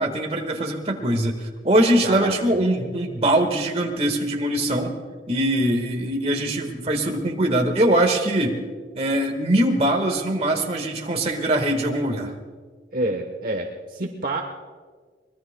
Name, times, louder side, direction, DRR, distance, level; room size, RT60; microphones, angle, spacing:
voice 1, 0.0-5.0 5.3-8.6 8.9-12.3, right 1 dB, 35° right, 3 dB, 1.6 m, -22 dB
voice 2, 2.0-2.6 12.9-14.4, right 2 dB, 50° right, 3 dB, 1.0 m, -28 dB
24.5 x 20.5 x 2.2 m, 1.5 s
head